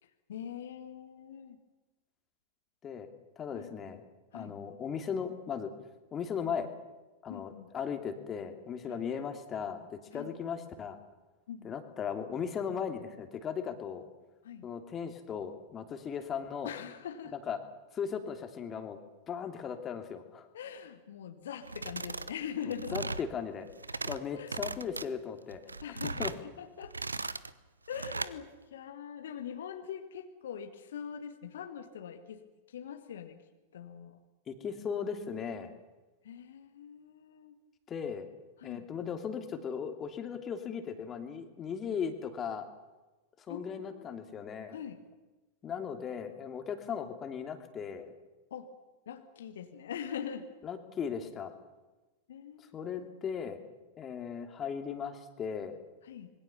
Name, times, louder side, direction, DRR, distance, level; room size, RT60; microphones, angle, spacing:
voice 1, 0.0-1.6 3.5-3.7 4.3-4.5 7.3-7.7 8.9-9.1 10.1-10.3 11.5-11.7 14.4-14.7 16.6-17.4 20.5-23.1 24.3-24.6 25.8-26.9 27.9-33.4 33.7-34.2 36.2-37.6 38.6-38.9 43.5-44.2 44.7-45.0 48.5-48.7 49.1-50.5 52.3-53.1 56.0-56.3, left 8 dB, 60° left, 6 dB, 1.9 m, -43 dB
voice 2, 3.4-4.0 4.3-5.7 6.1-6.7 7.2-11.0 11.6-14.1 14.6-16.7 17.5-17.6 17.9-19.0 19.3-20.5 22.9-23.7 24.0-25.6 26.2-26.3 34.5-35.7 37.9-38.3 38.6-42.7 43.5-44.8 45.6-48.1 50.6-51.5 52.7-53.6 54.0-55.8, left 7 dB, 25° left, 6 dB, 2.8 m, -37 dB
sound 1, 21.6-22.3 22.6-23.3 23.7-24.2 24.5-25.1 25.5-26.4 26.8-27.5 27.9-28.3, right 3 dB, 80° right, 0.9 m, -37 dB
25.5 x 22.5 x 7.1 m, 1.1 s
figure-of-eight pair, 90°, 0 cm